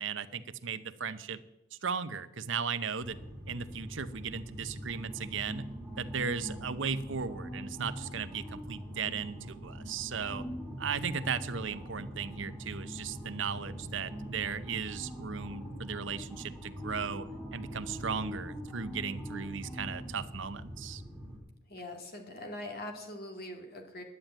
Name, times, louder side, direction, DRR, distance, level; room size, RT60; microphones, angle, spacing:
voice 1, 0.0-1.4 1.7-3.2 3.5-5.7 6.0-10.4 10.8-21.0, right 6 dB, 65° right, 12 dB, 0.8 m, -36 dB
sound 1, 3.0-21.4, equal, 5° left, 3.8 m, -42 dB
voice 2, 21.7-24.0, left 1 dB, 50° left, 3 dB, 2.4 m, -42 dB
11.5 x 9.0 x 9.1 m, 0.92 s
head